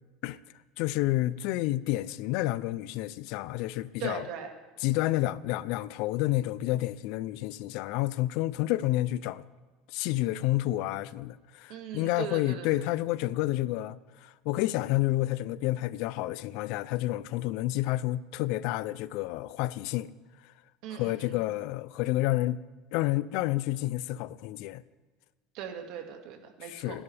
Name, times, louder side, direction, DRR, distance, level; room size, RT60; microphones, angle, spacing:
voice 1, 0.8-4.3 4.8-9.4 9.9-20.1 21.0-22.6 22.9-24.8 26.7-27.0, left 16 dB, 65° left, 0.5 m, -30 dB
voice 2, 4.0-4.5 11.7-12.9 20.8-21.4 25.5-27.0, right 8 dB, 60° right, 2.2 m, -39 dB
28.5 x 11.0 x 3.5 m
cardioid pair, 145°, 0 cm